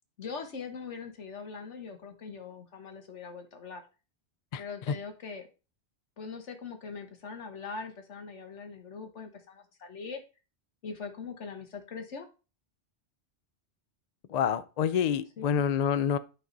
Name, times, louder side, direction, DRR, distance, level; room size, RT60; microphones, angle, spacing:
voice 1, 0.2-3.8 4.6-5.5 6.2-10.2 10.8-12.3 15.4-15.6, left 5 dB, 85° left, 1.6 m, -41 dB
voice 2, 4.5-4.9 14.3-16.2, left 8 dB, 55° left, 0.4 m, -28 dB
11.0 x 3.9 x 3.9 m
omnidirectional pair, 1.2 m